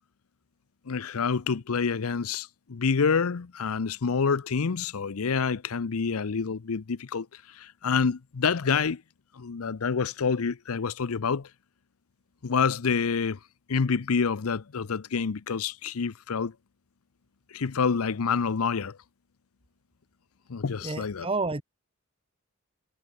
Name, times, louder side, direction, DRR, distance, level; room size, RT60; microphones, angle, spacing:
voice 1, 0.9-7.3 7.5-9.0 9.4-11.5 12.4-13.4 13.7-16.5 17.5-19.0 20.5-21.3, left 5 dB, 80° left, 0.6 m, -27 dB
voice 2, 20.8-21.6, right 3 dB, 25° right, 1.1 m, -30 dB
head